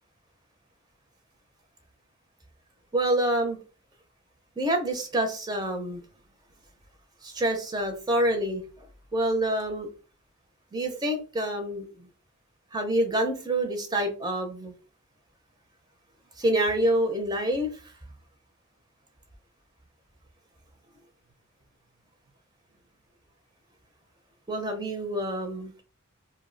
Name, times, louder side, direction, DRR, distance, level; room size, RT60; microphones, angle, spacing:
voice 1, 2.9-3.6 4.6-6.0 7.2-8.6 9.1-9.9 10.7-11.8 12.7-14.7 16.4-17.8 24.5-25.8, right 1 dB, 20° right, 5 dB, 0.4 m, -27 dB
2.6 x 2.0 x 3.7 m, 0.34 s
head